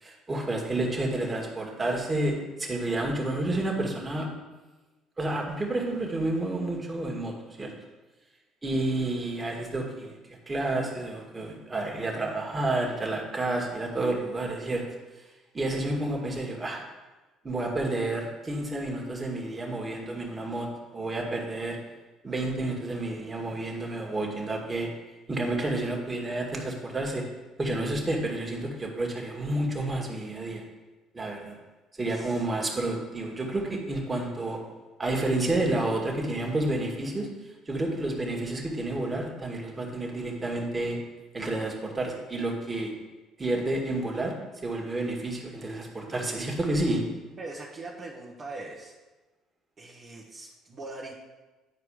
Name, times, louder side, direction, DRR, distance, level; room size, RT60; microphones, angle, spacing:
voice 1, 0.0-4.3 5.2-7.7 8.6-10.2 10.5-14.8 15.5-16.8 17.4-20.7 20.9-21.8 22.2-24.9 25.3-27.2 27.6-30.6 31.1-31.6 32.0-34.6 35.0-37.3 37.7-41.0 41.3-42.9 43.4-44.3 44.6-47.0, right 2 dB, 25° right, -1 dB, 2.1 m, -30 dB
voice 2, 32.1-32.4 47.4-48.9 49.8-51.1, right 2 dB, 40° right, -6 dB, 1.5 m, -41 dB
9.7 x 4.7 x 5.0 m, 1.2 s
hypercardioid pair, 65°, 0 cm